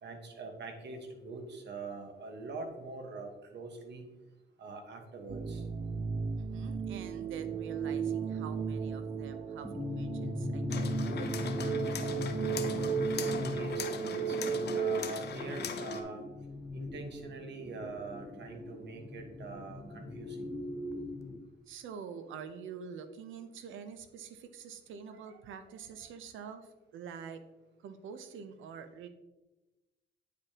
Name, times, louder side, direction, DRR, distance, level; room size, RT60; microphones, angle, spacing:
voice 1, 0.0-4.0 4.6-5.6 13.1-16.2 16.7-20.5, right 3 dB, 60° right, 4 dB, 1.4 m, -43 dB
sound 1, 5.3-15.0, right 6 dB, 35° right, 0.4 m, -35 dB
voice 2, 6.4-12.2 21.7-27.4 27.8-29.1, right 6 dB, 80° right, 10 dB, 0.7 m, -47 dB
sound 2, 9.6-21.4, left 2 dB, 15° left, 0.7 m, -40 dB
sound 3, 10.7-16.0, left 7 dB, 55° left, 0.7 m, -41 dB
9.2 x 5.0 x 2.9 m, 1.1 s
cardioid pair, 90°, 20 cm